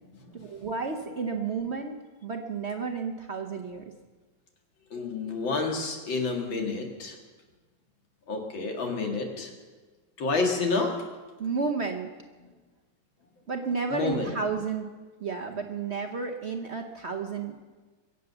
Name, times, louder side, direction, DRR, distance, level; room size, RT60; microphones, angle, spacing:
voice 1, 0.3-2.0 2.2-3.9 11.4-12.1 13.5-14.9 15.2-17.6, right 5 dB, 45° right, 4 dB, 0.9 m, -32 dB
voice 2, 4.9-7.2 8.3-9.5 10.2-11.1 13.9-14.3, left 3 dB, 80° left, 2 dB, 2.9 m, -29 dB
23.0 x 8.0 x 6.9 m, 1.3 s
omnidirectional pair, 2.1 m